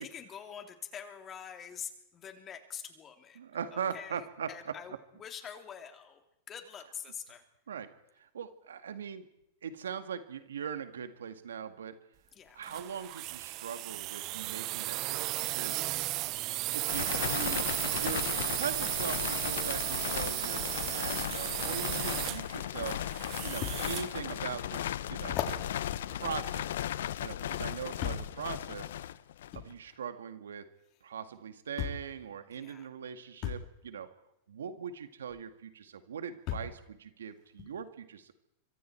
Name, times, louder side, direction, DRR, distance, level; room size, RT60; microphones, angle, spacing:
voice 1, 0.0-3.4 3.7-7.4 12.3-12.6 32.5-32.9, left 8 dB, 30° left, 6 dB, 3.4 m, -45 dB
voice 2, 3.4-4.5 7.7-9.3 9.6-12.0 12.5-15.8 16.7-17.6 18.0-23.0 23.4-25.4 26.1-26.8 27.2-28.9 29.5-30.6 31.0-34.1 34.5-38.3, right 7 dB, 85° right, 10 dB, 2.0 m, -41 dB
sound 1, 12.6-24.2, right 18 dB, 45° right, 0.8 m, -35 dB
sound 2, 16.9-29.7, left 11 dB, 75° left, 0.8 m, -36 dB
sound 3, 22.5-22.6 23.6-23.8 24.4-24.5 25.2-27.1 28.0-28.4 29.5-29.7 31.0-31.1 31.8-32.1 33.4-33.7 35.3-35.4 36.5-36.8 37.6-37.7, left 9 dB, 45° left, 3.6 m, -37 dB
25.5 x 24.5 x 4.6 m, 0.82 s
hypercardioid pair, 110°, 0 cm